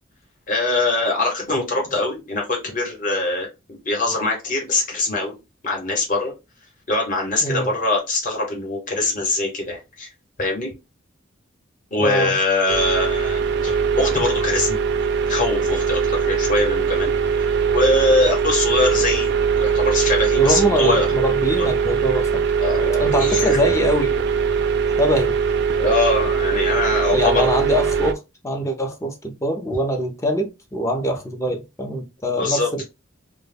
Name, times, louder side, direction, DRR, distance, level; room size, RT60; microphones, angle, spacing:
voice 1, 0.5-5.4 5.6-6.3 6.9-10.1 10.4-10.7 11.9-14.8 15.3-21.1 21.6-21.7 22.6-23.6 25.8-27.5 32.4-32.8, left 2 dB, 40° left, 0.9 m, -23 dB
voice 2, 7.4-7.7 12.0-12.4 20.4-22.4 23.0-24.2 25.0-25.3 27.1-32.8, right 1 dB, 15° left, 0.4 m, -23 dB
sound 1, 12.7-28.1, right 6 dB, 55° right, 0.3 m, -21 dB
2.1 x 2.1 x 3.2 m
head